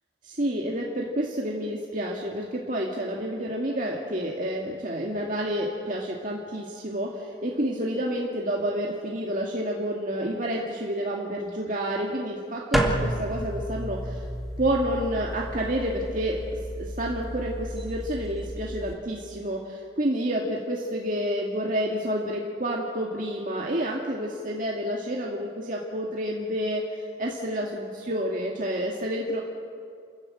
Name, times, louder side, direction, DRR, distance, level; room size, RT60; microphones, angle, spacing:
voice 1, 0.2-14.3 14.6-16.4 16.8-29.4, equal, 45° right, -2 dB, 2.1 m, -29 dB
sound 1, 12.7-18.9, equal, ahead, 2.2 m, -31 dB
29.5 x 14.5 x 8.7 m, 2.3 s
head